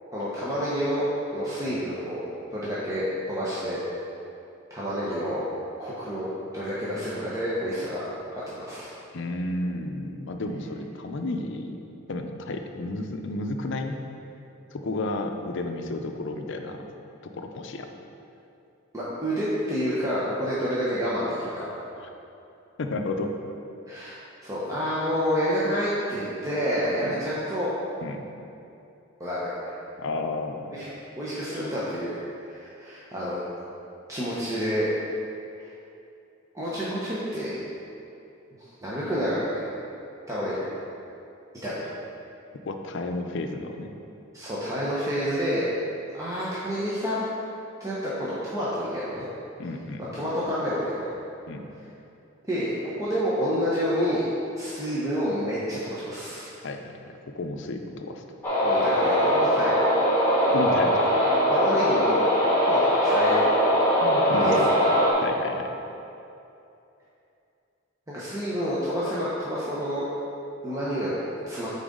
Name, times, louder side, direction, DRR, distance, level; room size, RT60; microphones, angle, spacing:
voice 1, 0.1-1.0 1.3-2.2 2.5-3.8 4.7-5.4 5.8-6.3 6.5-8.0 8.3-8.9 18.9-21.6 23.9-24.1 24.4-27.7 29.2-29.5 30.7-30.9 31.2-33.4 34.1-34.9 35.6-35.7 36.5-37.6 38.8-39.7 40.3-40.7 41.6-41.8 44.3-45.7 46.1-47.2 47.8-49.3 50.1-51.0 52.5-54.2 54.6-56.5 58.6-59.7 61.5-62.3 62.6-63.5 64.4-64.7 68.1-70.1 70.6-71.7, equal, 15° right, -9 dB, 0.8 m, -28 dB
voice 2, 9.1-11.8 12.1-14.0 14.7-16.8 17.2-17.9 22.0-22.1 22.8-23.3 27.0-27.1 28.0-28.2 30.0-30.9 42.7-43.9 49.6-50.2 51.5-51.7 56.6-58.2 60.4-61.1 64.0-64.7 65.2-65.6, left 2 dB, 65° left, 4 dB, 0.5 m, -32 dB
sound 1, 58.4-65.1, equal, 10° left, 1.5 m, -21 dB
9.0 x 4.0 x 3.7 m, 2.7 s
head